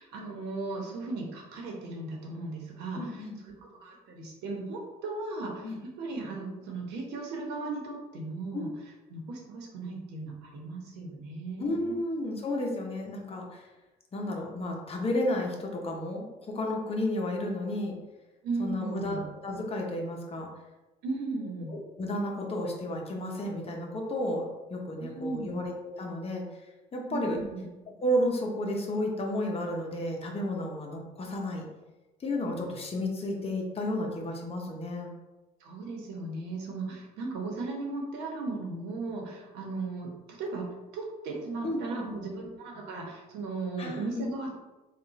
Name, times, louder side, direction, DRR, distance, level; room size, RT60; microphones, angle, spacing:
voice 1, 0.0-8.7 9.1-11.9 18.4-19.2 21.0-21.7 25.0-25.6 27.1-27.7 35.6-40.6 40.9-44.5, right 3 dB, 90° right, 0 dB, 1.1 m, -36 dB
voice 2, 2.9-3.4 5.6-5.8 8.5-8.6 11.6-13.7 14.1-18.0 18.6-20.5 21.6-24.4 24.7-26.4 26.9-27.4 28.0-31.7 32.2-35.1 41.6-42.1 43.8-44.2, left 1 dB, 35° left, 0 dB, 0.9 m, -32 dB
3.6 x 2.5 x 4.1 m, 1.1 s
cardioid pair, 110°, 17 cm